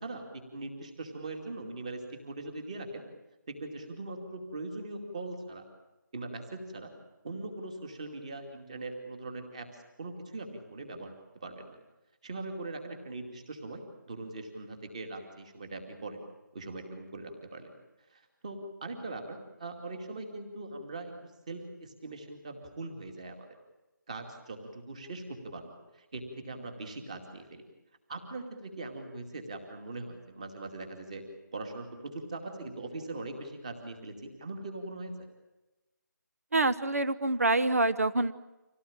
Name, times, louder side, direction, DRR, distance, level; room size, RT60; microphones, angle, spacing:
voice 1, 0.0-3.0 3.5-5.7 6.1-6.9 7.2-11.1 11.4-11.8 12.2-16.2 16.5-17.7 18.1-21.1 21.5-23.5 24.1-27.7 28.1-31.2 31.5-34.1 34.4-35.1, right 2 dB, 20° right, 5 dB, 2.6 m, -41 dB
voice 2, 36.5-38.3, right 2 dB, 50° right, 12 dB, 1.0 m, -26 dB
26.5 x 17.5 x 8.8 m, 1.0 s
figure-of-eight pair, 175°, 11 cm